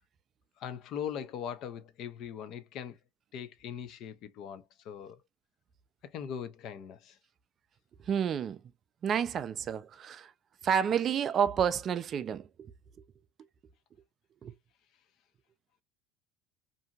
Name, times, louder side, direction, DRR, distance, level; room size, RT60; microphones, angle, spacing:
voice 1, 0.6-3.0 3.3-5.2 6.1-7.2, left 8 dB, 55° left, 0.5 m, -40 dB
voice 2, 8.0-8.6 9.0-10.3 10.6-12.7 14.4-14.5, right 8 dB, 40° right, 0.3 m, -30 dB
2.8 x 2.6 x 2.3 m
supercardioid pair, 125°, 0 cm